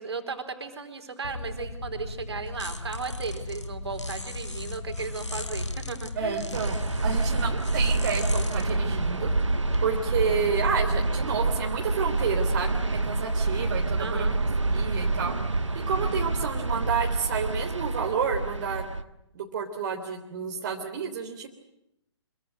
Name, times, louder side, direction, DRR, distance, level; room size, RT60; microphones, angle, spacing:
voice 1, 0.0-6.5 14.0-14.4, right 4 dB, 60° right, 6 dB, 4.4 m, -36 dB
sound 1, 1.2-9.8, left 2 dB, 80° left, 4.0 m, -35 dB
voice 2, 6.1-9.3 9.8-14.3 14.7-15.3 15.7-18.8 19.3-21.5, right 6 dB, 40° right, 2 dB, 3.3 m, -30 dB
sound 2, 6.5-19.0, right 3 dB, 80° right, 1.6 m, -27 dB
26.0 x 23.5 x 8.0 m, 0.83 s
figure-of-eight pair, 125°, 15 cm